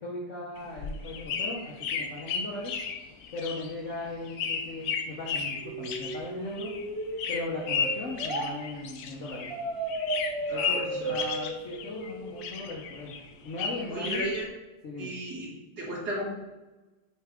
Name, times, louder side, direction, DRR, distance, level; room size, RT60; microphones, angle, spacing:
voice 1, 0.0-2.7 3.3-6.7 7.3-9.5 10.5-13.1 13.4-14.3 14.8-15.1, left 2 dB, 50° left, -4 dB, 1.3 m, -38 dB
sound 1, 0.6-9.6 9.9-12.1 12.4-14.4, left 6 dB, 70° left, 1.1 m, -34 dB
sound 2, 5.6-8.5 9.5-12.5, right 2 dB, 25° right, 1.1 m, -35 dB
voice 2, 10.5-11.1 13.9-14.4 15.0-15.5 15.8-16.2, right 1 dB, 75° right, -6 dB, 3.0 m, -34 dB
7.6 x 4.7 x 3.6 m, 1.1 s
omnidirectional pair, 1.7 m